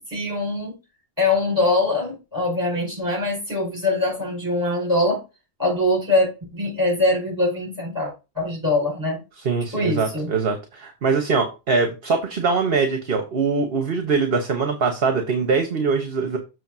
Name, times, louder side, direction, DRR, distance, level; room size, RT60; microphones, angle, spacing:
voice 1, 0.1-0.8 1.2-5.2 5.6-9.2 9.7-10.3, left 2 dB, 15° right, 5.0 m, -23 dB
voice 2, 9.4-16.4, right 4 dB, 60° right, 1.3 m, -22 dB
7.0 x 3.3 x 5.9 m
omnidirectional pair, 1.1 m